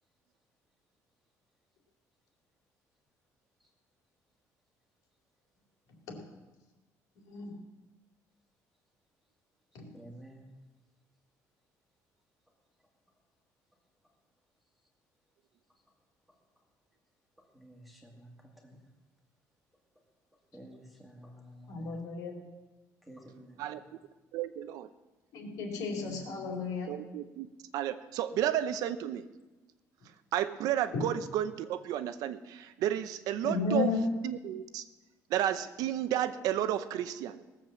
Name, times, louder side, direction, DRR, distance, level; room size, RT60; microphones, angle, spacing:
voice 1, 7.3-7.6 9.7-9.9 21.7-22.3 25.3-26.9 30.9-31.0 33.4-34.0, left 4 dB, 70° left, 0 dB, 3.6 m, -33 dB
voice 2, 9.9-10.4 17.6-18.3 18.6-18.7 20.5-21.9 23.1-23.7 26.1-26.2, equal, ahead, 0 dB, 2.0 m, -51 dB
voice 3, 24.3-24.9 26.9-27.5 27.7-29.3 30.3-33.9 34.2-34.8 35.3-37.4, right 11 dB, 70° right, 12 dB, 0.7 m, -32 dB
18.5 x 7.4 x 7.4 m, 1.1 s
cardioid pair, 175°, 7 cm